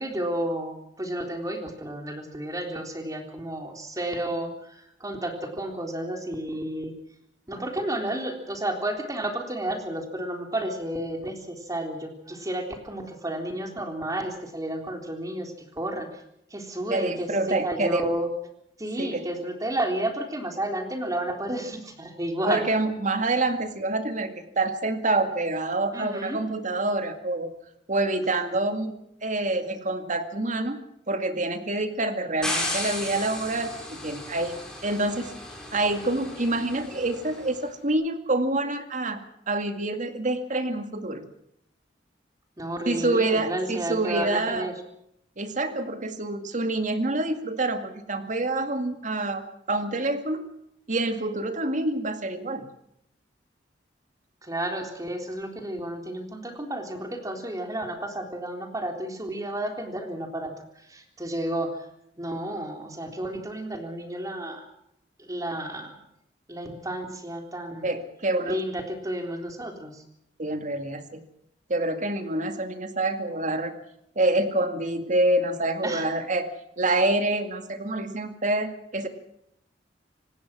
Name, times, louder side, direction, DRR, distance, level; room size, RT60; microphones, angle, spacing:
voice 1, 0.0-7.0 7.5-16.2 16.5-18.3 18.8-22.6 25.9-26.4 42.6-44.7 54.4-61.9 62.2-64.7 65.2-66.0 66.5-67.9 68.4-70.0 75.8-76.1, right 1 dB, 20° right, 4 dB, 3.7 m, -32 dB
voice 2, 16.9-18.0 19.0-19.2 22.5-27.5 27.9-28.9 29.2-30.8 31.1-35.3 35.7-41.2 42.9-44.7 45.4-49.4 49.7-50.5 50.9-52.7 67.8-68.6 70.4-71.2 71.7-73.8 74.2-76.5 76.8-79.1, right 2 dB, 45° right, 8 dB, 2.1 m, -27 dB
sound 1, 32.4-37.5, left 1 dB, 5° left, 5.8 m, -35 dB
26.5 x 18.5 x 6.2 m, 0.74 s
head